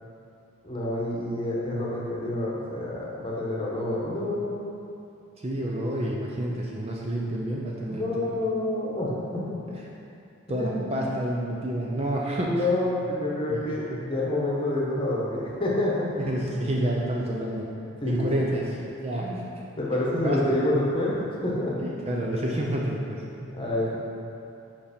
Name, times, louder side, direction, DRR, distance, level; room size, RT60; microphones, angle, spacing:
voice 1, 0.6-4.7 7.9-9.6 10.6-10.8 12.4-16.4 18.0-18.5 19.2-19.4 19.8-21.2 21.4-21.8 23.5-24.0, left 1 dB, 25° left, -5 dB, 1.0 m, -28 dB
voice 2, 5.4-8.3 10.5-12.6 13.5-13.6 13.9-14.1 16.2-17.7 18.0-18.7 19.0-19.4 20.2-20.4 21.8-23.6, right 1 dB, 25° right, -3 dB, 0.5 m, -29 dB
5.3 x 5.1 x 5.1 m, 2.7 s
head